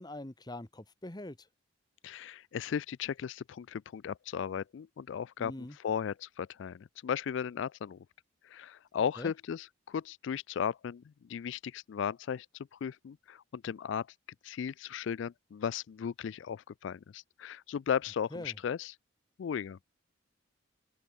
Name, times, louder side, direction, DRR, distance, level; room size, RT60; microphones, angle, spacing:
voice 1, 0.0-1.4 5.4-5.8 9.2-9.3 18.3-18.5, left 1 dB, 20° left, 1.2 m, -43 dB
voice 2, 2.0-8.0 8.4-11.0 11.3-14.1 14.4-19.0 19.4-19.8, left 7 dB, 65° left, 0.3 m, -36 dB
open air
head